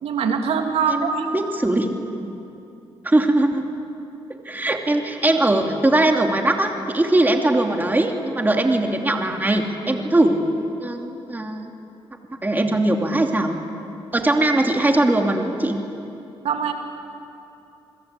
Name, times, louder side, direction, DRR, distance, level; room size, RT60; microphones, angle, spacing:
voice 1, 0.0-1.3 16.4-16.7, right 6 dB, 80° right, 4 dB, 2.8 m, -22 dB
voice 2, 0.9-2.1 3.0-3.6 4.4-10.4 10.8-11.7 12.4-13.6 14.1-15.8, right 1 dB, 15° right, 3 dB, 2.8 m, -20 dB
28.5 x 22.0 x 8.4 m, 2.9 s
cardioid pair, 75°, 11 cm